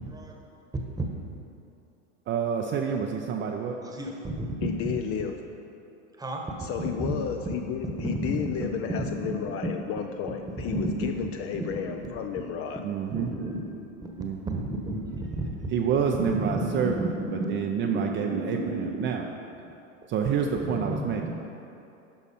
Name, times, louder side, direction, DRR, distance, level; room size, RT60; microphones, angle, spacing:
voice 1, 0.1-0.4 1.0-1.1 3.8-4.4 4.8-4.9 6.2-6.5 7.0-7.2 8.2-8.3 10.7-11.1 13.1-13.6 14.0-14.1 14.5-15.3 16.3-19.1 19.6-19.7 20.6-21.3, right 1 dB, 10° right, 1 dB, 1.1 m, -32 dB
voice 2, 2.3-3.8 12.8-13.3 14.2-14.6 15.7-19.2 20.1-21.3, right 7 dB, 30° right, 2 dB, 0.5 m, -28 dB
voice 3, 4.6-5.3 6.6-12.8, left 8 dB, 35° left, 5 dB, 0.5 m, -32 dB
11.0 x 6.0 x 4.2 m, 2.8 s
hypercardioid pair, 105°, 39 cm